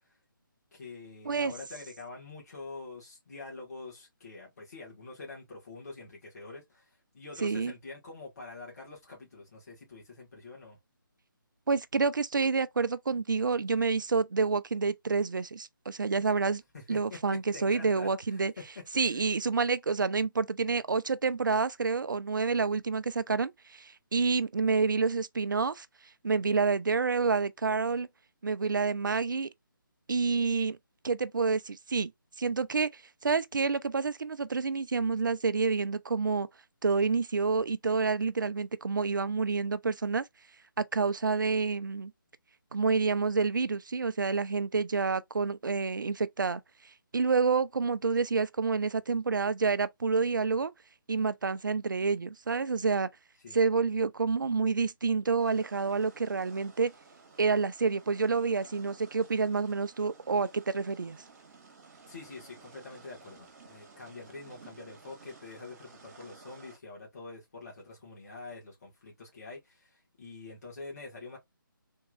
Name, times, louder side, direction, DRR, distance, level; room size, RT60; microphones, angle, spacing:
voice 1, 0.7-6.9 7.1-10.8 16.7-19.3 53.4-53.6 62.1-71.4, left 3 dB, 45° left, 1.7 m, -46 dB
voice 2, 7.4-7.7 11.7-16.6 16.9-18.5 18.9-25.9 26.2-28.1 28.4-29.5 30.1-30.8 31.0-32.1 32.4-36.5 36.8-40.2 40.8-42.1 42.7-46.6 47.1-50.7 51.1-53.1 53.5-56.9 57.4-61.2, right 4 dB, 65° right, 0.4 m, -28 dB
sound 1, 55.4-66.8, right 4 dB, 45° right, 1.4 m, -55 dB
3.6 x 2.9 x 2.5 m
figure-of-eight pair, 145°, 12 cm